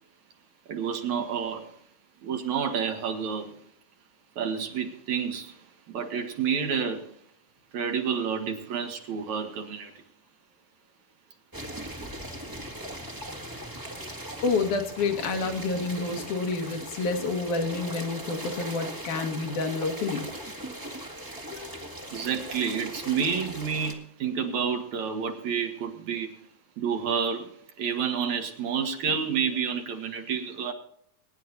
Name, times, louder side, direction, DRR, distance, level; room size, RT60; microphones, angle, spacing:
voice 1, 0.7-1.7 2.2-3.6 4.4-5.6 5.9-7.2 7.7-10.0 22.1-26.4 26.8-27.5 27.8-30.7, right 7 dB, 65° right, 4 dB, 2.9 m, -29 dB
sound 1, 11.5-23.9, right 1 dB, 10° right, 1.2 m, -39 dB
voice 2, 14.4-20.3 21.5-21.9, left 3 dB, 75° left, 4 dB, 3.0 m, -29 dB
23.0 x 10.5 x 2.7 m, 0.66 s
omnidirectional pair, 3.6 m